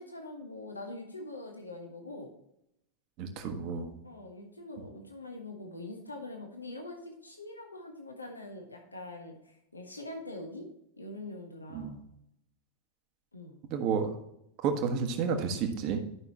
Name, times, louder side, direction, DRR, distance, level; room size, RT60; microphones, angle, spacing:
voice 1, 0.0-2.3 4.0-10.7 11.0-12.1 13.3-13.6, left 2 dB, 80° left, 2 dB, 1.3 m, -43 dB
voice 2, 3.2-3.9 11.7-12.0 13.7-14.2 14.6-16.0, right 6 dB, 40° right, 5 dB, 1.4 m, -31 dB
11.5 x 5.9 x 2.9 m, 0.79 s
figure-of-eight pair, 90°, 0 cm